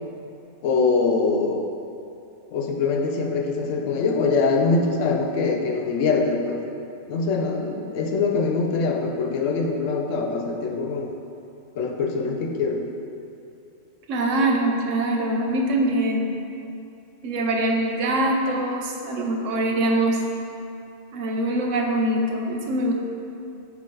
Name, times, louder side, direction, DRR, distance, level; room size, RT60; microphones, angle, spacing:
voice 1, 0.6-1.7 2.5-6.6 7.1-11.1 11.7-12.9, left 4 dB, 85° left, 2 dB, 1.0 m, -23 dB
voice 2, 14.1-16.4 17.2-20.2 21.1-22.9, right 1 dB, 80° right, 1 dB, 1.1 m, -23 dB
9.1 x 3.3 x 3.8 m, 2.7 s
omnidirectional pair, 1.3 m